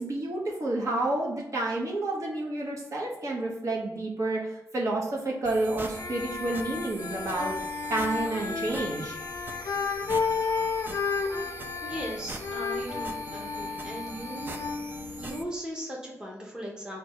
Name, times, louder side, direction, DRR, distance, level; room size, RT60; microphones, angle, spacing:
voice 1, 0.0-7.5 7.9-9.2, right 2 dB, 60° right, -2 dB, 1.0 m, -30 dB
sound 1, 5.5-15.4, right 2 dB, 35° right, 0.4 m, -42 dB
sound 2, 5.8-15.6, left 5 dB, 60° left, 0.4 m, -32 dB
voice 2, 11.8-14.6 15.2-17.0, equal, 15° right, -2 dB, 0.7 m, -38 dB
4.5 x 2.2 x 4.5 m, 0.87 s
wide cardioid pair, 180°, 6 cm